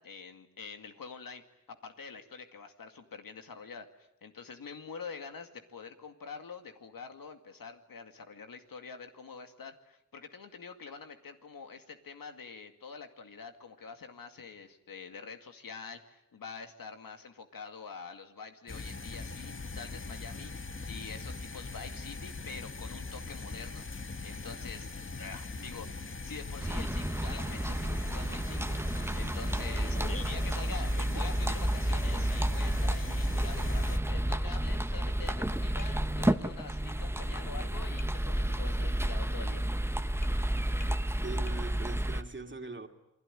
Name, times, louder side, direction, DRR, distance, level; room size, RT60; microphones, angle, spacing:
voice 1, 0.0-1.4 1.7-3.9 4.2-20.5 20.9-23.8 24.2-28.8 29.1-39.7, left 5 dB, 90° left, 2.3 m, -46 dB
sound 1, 18.7-34.0, left 3 dB, 40° left, 1.4 m, -41 dB
sound 2, 26.6-42.2, right 1 dB, 5° right, 1.1 m, -31 dB
Tap, 35.8-36.0 38.0-38.2 40.2-40.4 40.8-41.0 41.5-41.6, left 6 dB, 65° left, 1.4 m, -51 dB
voice 2, 41.0-42.9, right 3 dB, 35° right, 2.6 m, -42 dB
28.5 x 21.0 x 10.0 m
wide cardioid pair, 75°, 33 cm